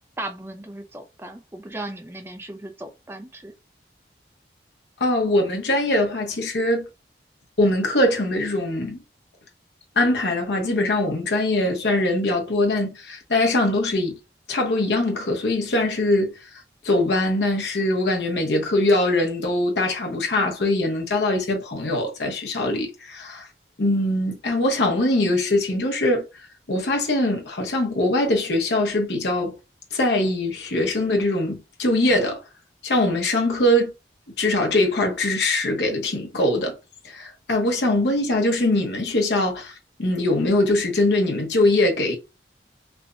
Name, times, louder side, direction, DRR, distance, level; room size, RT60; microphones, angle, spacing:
voice 1, 0.2-3.5, right 1 dB, 15° right, 0.4 m, -36 dB
voice 2, 5.0-6.9 7.6-9.0 10.0-14.2 14.5-23.5 23.8-26.2 26.7-29.5 29.9-32.4 32.8-33.9 34.4-36.8 37.0-39.7 40.0-42.2, left 1 dB, 80° left, 0.8 m, -22 dB
3.2 x 2.1 x 2.5 m
head